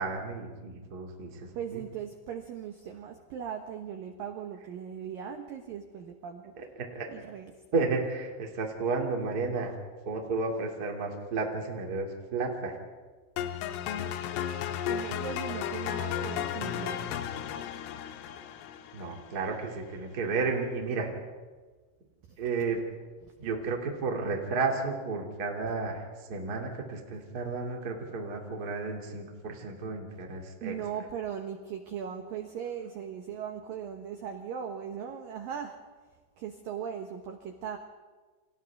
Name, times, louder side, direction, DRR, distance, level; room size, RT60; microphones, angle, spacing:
voice 1, 0.0-1.8 6.6-7.1 7.7-9.8 10.1-12.8 18.9-21.1 22.4-22.9 23.4-30.7, right 4 dB, 30° right, 1 dB, 2.0 m, -32 dB
voice 2, 1.5-6.7 7.1-7.9 14.8-17.2 22.3-22.8 23.3-23.5 30.6-35.8 36.4-37.8, right 8 dB, 85° right, 5 dB, 2.0 m, -39 dB
sound 1, 13.4-19.5, left 9 dB, 85° left, 3.6 m, -34 dB
29.5 x 27.5 x 3.6 m, 1.4 s
omnidirectional pair, 5.9 m